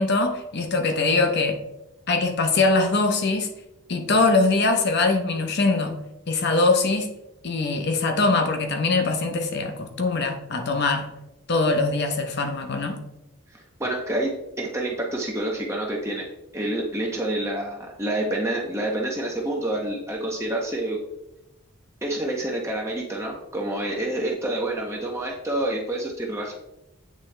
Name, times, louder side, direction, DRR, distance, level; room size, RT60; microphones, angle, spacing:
voice 1, 0.0-1.6 2.1-3.5 3.9-6.0 6.3-7.1 7.4-11.1 11.5-13.0, left 3 dB, 50° left, 5 dB, 0.8 m, -22 dB
voice 2, 13.5-16.3 16.5-21.0 22.0-26.5, right 1 dB, 15° right, -1 dB, 0.7 m, -28 dB
8.4 x 3.7 x 3.3 m, 0.90 s
head